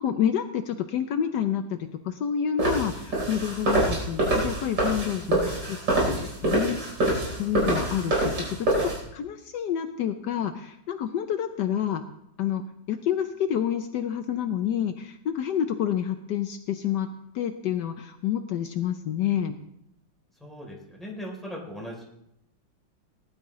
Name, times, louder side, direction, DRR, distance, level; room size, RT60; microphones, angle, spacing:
voice 1, 0.0-5.5 6.1-8.8 9.1-12.0 12.4-17.1 17.3-19.6, left 9 dB, 70° left, 8 dB, 1.2 m, -28 dB
sound 1, 2.6-9.0, right 2 dB, 65° right, 4.7 m, -26 dB
voice 2, 5.3-5.6 20.4-22.1, equal, ahead, -2 dB, 3.2 m, -38 dB
19.0 x 11.5 x 3.1 m, 0.78 s
omnidirectional pair, 2.1 m